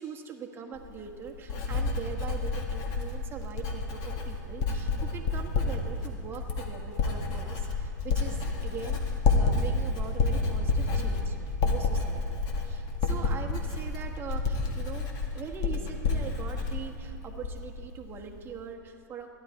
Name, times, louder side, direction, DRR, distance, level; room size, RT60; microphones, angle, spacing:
voice 1, 0.0-15.1 15.3-19.3, right 6 dB, 25° right, 2 dB, 1.3 m, -42 dB
Writing, 0.8-17.8 18.1-18.5, left 3 dB, 40° left, 1.9 m, -29 dB
15.5 x 11.0 x 4.6 m, 2.7 s
hypercardioid pair, 115°, 10 cm